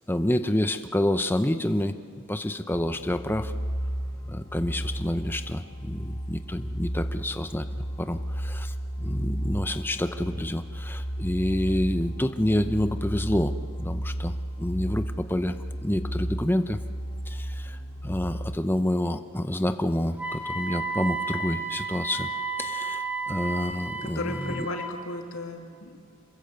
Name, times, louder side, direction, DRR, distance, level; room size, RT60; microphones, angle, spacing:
voice 1, 0.1-1.9 2.3-3.5 4.3-13.5 13.8-16.8 17.3-22.3 22.6-24.7, left 1 dB, 10° left, 9 dB, 0.7 m, -28 dB
sound 1, 2.7-18.6, equal, 45° left, 6.1 m, -33 dB
Wind instrument woodwind instrument, 20.2-25.0, right 3 dB, 5° right, 2.5 m, -32 dB
voice 2, 24.0-26.0, left 1 dB, 80° left, 3 dB, 2.5 m, -35 dB
27.0 x 21.0 x 8.0 m, 2.4 s
head